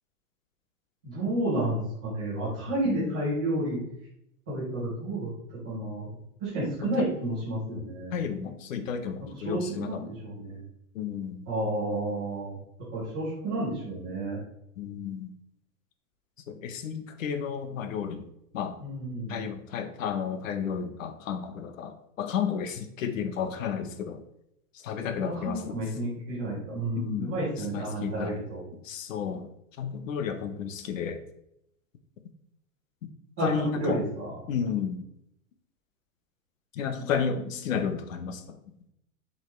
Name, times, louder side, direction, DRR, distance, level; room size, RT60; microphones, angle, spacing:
voice 1, 1.0-3.8 4.5-5.3 5.6-6.1 6.4-8.1 9.4-10.6 11.5-12.6 12.9-14.4 18.8-19.4 25.2-28.6 33.4-34.3 36.9-37.1, right 1 dB, 5° right, -12 dB, 0.4 m, -31 dB
voice 2, 2.8-3.2 6.8-7.1 8.1-10.0 10.9-11.5 14.8-15.3 16.5-18.2 18.5-18.8 19.3-24.2 24.8-25.8 26.9-27.4 27.7-28.4 28.8-29.5 29.8-31.2 33.4-34.0 34.5-35.0 36.7-38.4, left 7 dB, 60° left, 9 dB, 1.0 m, -32 dB
7.5 x 5.4 x 3.2 m, 0.78 s
supercardioid pair, 180°, 45 cm